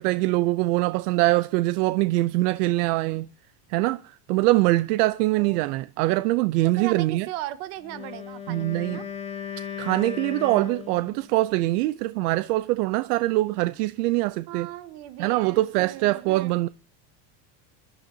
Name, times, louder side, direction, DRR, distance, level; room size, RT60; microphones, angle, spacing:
voice 1, 0.0-3.3 3.7-7.3 8.5-9.0 9.8-14.7 15.2-16.7, right 19 dB, 85° right, 0.7 m, -23 dB
voice 2, 5.4-5.7 6.6-9.0 14.5-16.6, right 14 dB, 65° right, 1.5 m, -37 dB
Wind instrument woodwind instrument, 7.8-11.3, left 8 dB, 15° left, 2.0 m, -36 dB
26.5 x 12.0 x 2.8 m
cardioid pair, 175°, 45 cm